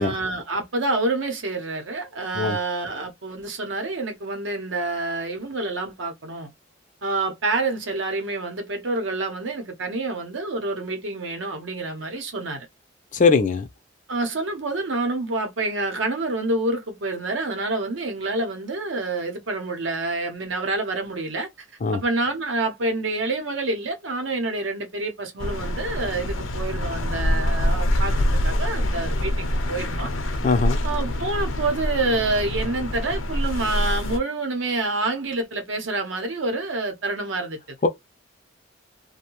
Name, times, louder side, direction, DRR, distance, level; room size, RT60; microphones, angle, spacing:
voice 1, 0.0-6.5 7.0-12.7 14.1-21.7 21.9-30.1 30.8-37.8, right 2 dB, 70° right, 0.8 m, -27 dB
voice 2, 13.1-13.7 21.8-22.0 30.4-30.8 37.8-37.9, left 4 dB, 40° left, 0.4 m, -20 dB
sound 1, 25.4-34.2, left 1 dB, 90° left, 0.6 m, -25 dB
2.6 x 2.1 x 2.9 m
head